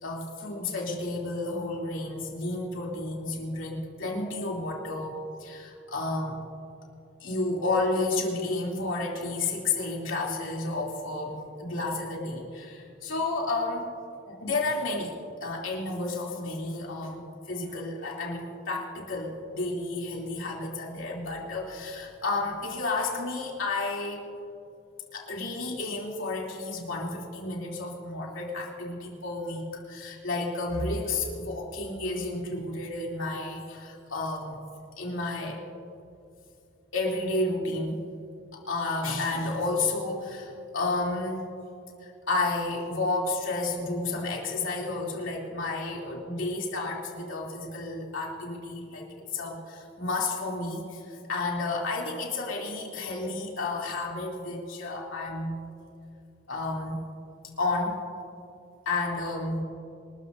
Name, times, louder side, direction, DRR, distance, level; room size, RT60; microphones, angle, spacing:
voice 1, 0.0-6.4 7.2-13.9 14.3-15.1 15.4-24.2 25.1-34.6 35.0-35.6 36.9-38.0 38.5-41.5 42.0-55.6 56.5-57.0 57.6-58.0 58.8-59.6, left 2 dB, 85° left, -2 dB, 3.1 m, -31 dB
26.0 x 13.5 x 2.7 m, 2.6 s
head